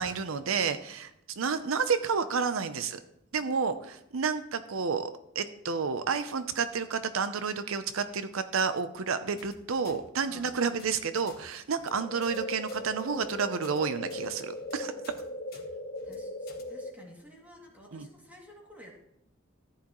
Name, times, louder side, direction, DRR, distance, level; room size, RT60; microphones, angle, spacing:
voice 1, 0.0-3.0 3.3-14.9 17.9-18.1, right 5 dB, 85° right, 11 dB, 0.6 m, -30 dB
voice 2, 3.4-3.9 10.2-10.5 14.8-14.9 16.0-18.9, equal, 10° right, -2 dB, 2.5 m, -53 dB
sound 1, 9.4-9.5 9.8-10.0 10.3-10.5 10.8-11.0 11.2-11.4 11.7-11.9 12.2-12.4 12.7-12.8 13.1-13.3 13.6-13.8 14.1-14.2 14.5-14.7 15.0-15.2 15.5-15.7 16.0-16.2 16.5-16.6, left 6 dB, 50° left, 1.5 m, -53 dB
sound 2, 11.9-16.9, left 1 dB, 30° left, 2.0 m, -39 dB
14.0 x 9.9 x 3.1 m, 0.79 s
head